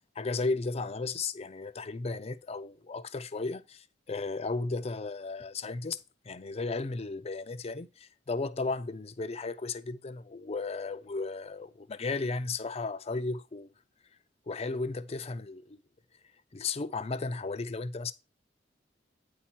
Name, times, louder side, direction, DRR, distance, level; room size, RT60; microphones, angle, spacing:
voice 1, 0.2-6.0 6.2-13.7 14.5-15.8 16.5-18.1, left 3 dB, 35° left, 0.5 m, -34 dB
9.3 x 4.3 x 4.4 m
head